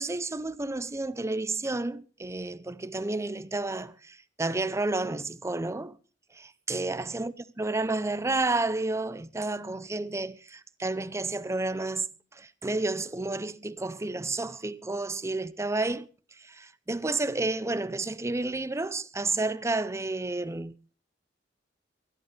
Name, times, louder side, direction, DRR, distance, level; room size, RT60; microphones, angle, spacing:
voice 1, 0.0-6.0 6.3-16.1 16.4-20.9, right 2 dB, 15° right, 0.6 m, -31 dB
23.5 x 11.5 x 3.3 m
head